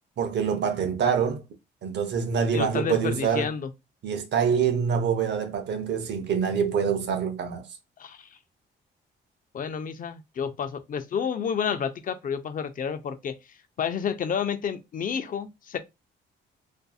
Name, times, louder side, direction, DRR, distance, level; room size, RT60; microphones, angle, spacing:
voice 1, 0.2-1.4 1.8-3.5 4.0-7.7, right 7 dB, 60° right, 0.7 m, -25 dB
voice 2, 2.5-3.7 8.0-8.3 9.5-13.4 13.8-15.8, left 7 dB, 45° left, 0.4 m, -30 dB
2.6 x 2.4 x 2.3 m
cardioid pair, 90°, 20 cm